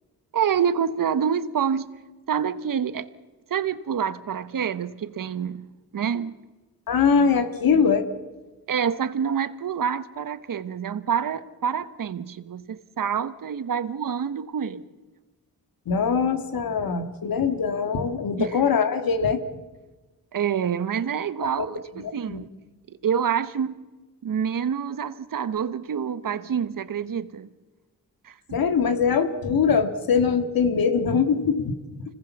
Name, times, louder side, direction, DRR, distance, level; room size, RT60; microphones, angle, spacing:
voice 1, 0.3-1.9 2.3-3.1 3.5-5.7 5.9-6.4 7.7-7.8 8.7-14.8 18.4-18.6 20.3-22.5 22.9-23.8 24.2-27.5 28.2-28.4, right 7 dB, 70° right, 1.2 m, -27 dB
voice 2, 6.9-8.1 15.9-19.4 21.4-21.5 22.3-22.5 28.5-31.7, left 6 dB, 80° left, 2.0 m, -22 dB
25.5 x 19.0 x 7.2 m
cardioid pair, 70°, 34 cm